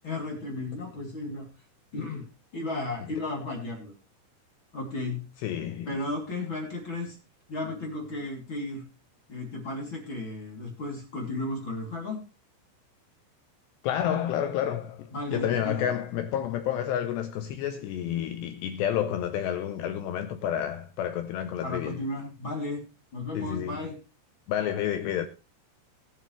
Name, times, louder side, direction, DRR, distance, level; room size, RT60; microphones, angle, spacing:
voice 1, 0.0-1.4 1.9-2.2 2.5-3.9 4.7-5.2 5.9-7.2 7.5-8.8 9.3-12.2 15.1-15.9 21.6-22.8 23.1-23.9, left 2 dB, 30° left, 2.6 m, -34 dB
voice 2, 5.4-6.0 13.8-22.0 23.3-23.8 24.5-25.3, left 10 dB, 80° left, 2.5 m, -30 dB
20.5 x 7.1 x 3.2 m
omnidirectional pair, 5.7 m